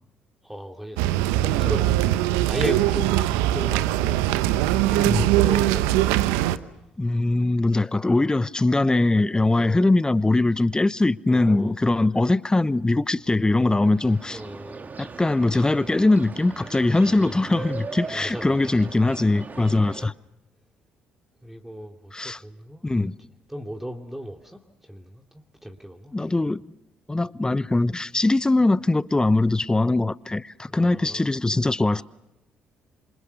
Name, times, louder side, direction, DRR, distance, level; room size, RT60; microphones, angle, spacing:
voice 1, 0.4-1.9 2.4-4.3 4.8-6.2 9.6-9.9 11.3-11.7 14.3-14.9 17.0-17.4 18.1-18.7 21.4-23.1 23.5-25.2 25.6-26.1 30.7-31.3 31.9-32.0, equal, 5° right, 2.6 m, -36 dB
sound 1, 1.0-6.6, right 14 dB, 80° right, 0.8 m, -21 dB
voice 2, 7.0-14.4 15.0-20.1 22.1-22.4 22.8-23.2 26.1-26.7 27.1-32.0, left 2 dB, 15° left, 0.9 m, -21 dB
sound 2, 13.6-20.1, right 4 dB, 35° right, 1.9 m, -39 dB
27.5 x 26.0 x 6.8 m
hypercardioid pair, 50°, 5 cm